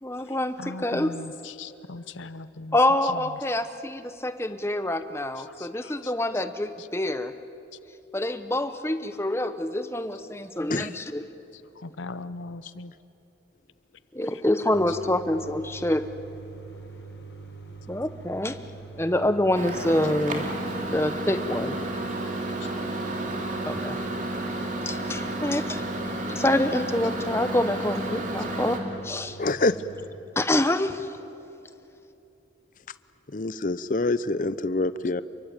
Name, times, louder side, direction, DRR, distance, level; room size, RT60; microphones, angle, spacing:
voice 1, 0.0-1.1 2.7-7.3 8.1-11.2 14.1-16.1 17.9-18.6 19.0-20.4 20.9-21.8 23.6-24.0 24.8-25.8 26.3-28.8 29.0-29.4 30.4-31.1, left 1 dB, 15° left, 10 dB, 0.9 m, -26 dB
voice 2, 0.6-2.7 3.1-3.2 5.5-5.9 11.8-12.9, left 3 dB, 90° left, 13 dB, 0.7 m, -39 dB
sound 1, 14.7-30.1, right 3 dB, 65° left, 4.6 m, -44 dB
Microwave oven, 19.5-28.8, right 1 dB, 40° right, 3.0 m, -31 dB
voice 3, 29.4-29.7 33.3-35.2, left 2 dB, 45° left, 15 dB, 0.7 m, -25 dB
28.5 x 23.0 x 8.9 m, 2.8 s
head